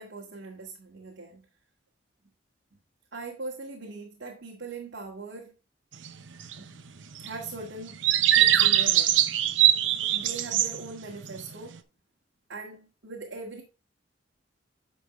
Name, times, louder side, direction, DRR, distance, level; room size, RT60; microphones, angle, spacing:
voice 1, 0.0-1.4 3.1-5.5 6.6-6.7 7.2-8.0 8.3-9.2 10.1-11.8 12.5-13.6, right 3 dB, 65° right, 1.8 m, -40 dB
sound 1, 6.1-6.2 6.4-6.6 7.2-7.6 8.0-10.9 11.2-11.5, right 12 dB, 90° right, 0.8 m, -22 dB
10.0 x 5.5 x 3.2 m
head